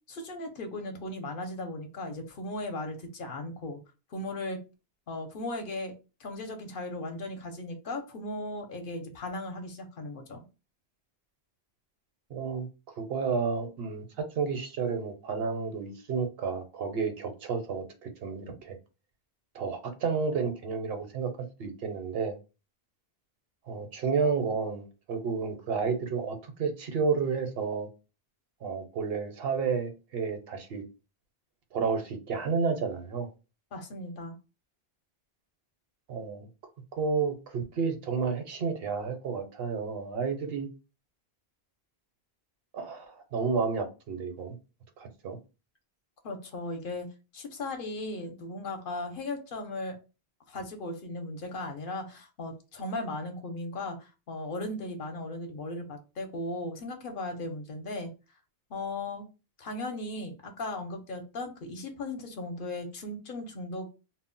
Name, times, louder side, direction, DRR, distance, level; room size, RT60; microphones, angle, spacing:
voice 1, 0.1-3.8 4.1-4.6 5.1-5.9 6.2-10.4 33.7-34.3 46.2-47.1 47.3-50.0 50.5-58.1 58.7-59.3 59.6-63.9, left 2 dB, 60° left, 0.8 m, -37 dB
voice 2, 12.3-12.7 13.0-18.8 19.5-21.3 21.6-22.3 23.7-27.9 28.6-30.8 31.7-33.3 36.1-36.5 37.0-40.7 42.7-44.6 45.0-45.4, right 5 dB, 70° right, 0.8 m, -31 dB
2.1 x 2.0 x 3.7 m
omnidirectional pair, 1.0 m